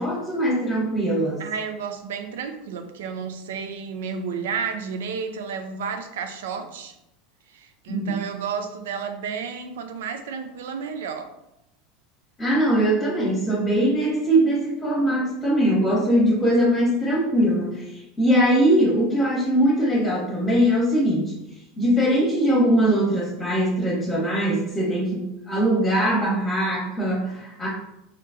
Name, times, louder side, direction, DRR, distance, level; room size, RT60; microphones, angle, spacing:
voice 1, 0.0-1.4 7.9-8.2 12.4-27.7, right 1 dB, 20° left, -6 dB, 1.0 m, -21 dB
voice 2, 1.4-6.9 7.5-11.3, right 6 dB, 65° right, 7 dB, 0.4 m, -32 dB
3.2 x 2.8 x 2.5 m, 0.85 s
figure-of-eight pair, 80°, 0 cm